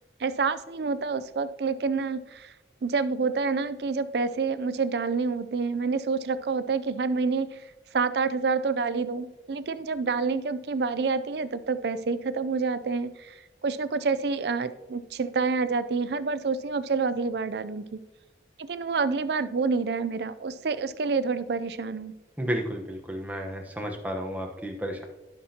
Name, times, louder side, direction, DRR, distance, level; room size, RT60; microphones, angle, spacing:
voice 1, 0.2-2.5 2.8-7.6 7.9-13.4 13.6-18.0 18.7-22.1, right 4 dB, 70° right, 13 dB, 0.5 m, -28 dB
voice 2, 22.4-25.0, equal, 10° right, 1 dB, 1.0 m, -32 dB
16.5 x 6.0 x 2.9 m, 1.1 s
head